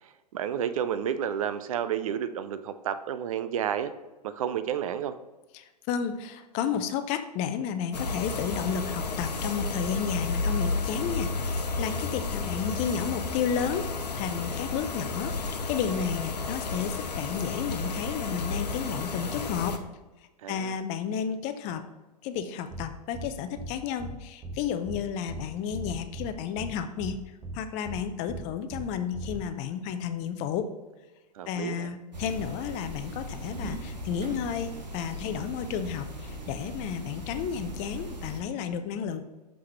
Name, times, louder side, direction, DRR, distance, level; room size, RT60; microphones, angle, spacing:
voice 1, 0.3-3.9 4.2-5.2 20.4-20.8 31.4-31.9, right 9 dB, 55° right, 12 dB, 0.5 m, -31 dB
voice 2, 5.5-13.9 14.1-19.8 20.5-21.8 22.2-27.2 27.5-30.7 31.5-39.2, left 7 dB, 35° left, 10 dB, 0.6 m, -32 dB
sound 1, 7.9-19.8, left 3 dB, 75° left, 0.7 m, -32 dB
sound 2, 22.7-22.8 23.1-23.3 23.6-23.7 24.0-24.1 24.4-24.6 24.9-25.0 25.3-25.4 25.7-26.3 26.6-26.7 27.0-27.1 27.4-27.6 27.9-28.0 28.3-28.4 28.7-28.8 29.1-29.4, right 3 dB, 15° right, 1.1 m, -38 dB
sound 3, 32.1-38.4, equal, 85° right, 1.1 m, -39 dB
6.2 x 5.6 x 3.1 m, 1.1 s
figure-of-eight pair, 100°, 21 cm